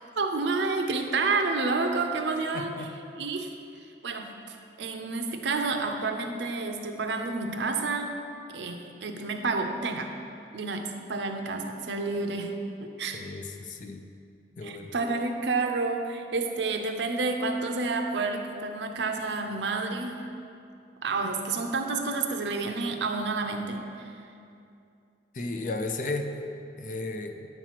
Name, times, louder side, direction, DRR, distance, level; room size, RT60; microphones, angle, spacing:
voice 1, 0.2-2.9 3.2-3.5 4.0-8.2 8.5-10.1 10.5-13.3 14.6-20.3 21.0-24.1, right 3 dB, 75° right, 5 dB, 0.6 m, -30 dB
voice 2, 2.5-2.9 13.1-14.0 14.6-14.9 25.3-26.3 26.8-27.3, left 2 dB, 45° left, 5 dB, 0.4 m, -34 dB
8.9 x 3.0 x 5.7 m, 2.5 s
head